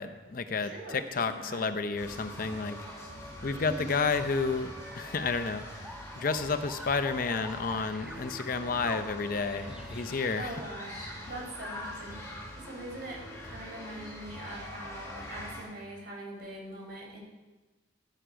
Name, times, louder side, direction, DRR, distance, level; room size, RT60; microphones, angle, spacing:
voice 1, 0.0-2.8 3.4-5.9 6.2-10.5, left 4 dB, 50° left, 10 dB, 0.6 m, -31 dB
voice 2, 0.6-1.6 3.5-3.9 10.4-17.2, right 1 dB, 60° right, -2 dB, 4.1 m, -43 dB
sound 1, 2.0-15.6, left 1 dB, 15° left, 4.4 m, -43 dB
sound 2, 4.2-10.7, right 1 dB, 5° right, 0.6 m, -47 dB
11.5 x 9.3 x 5.1 m, 1.2 s
head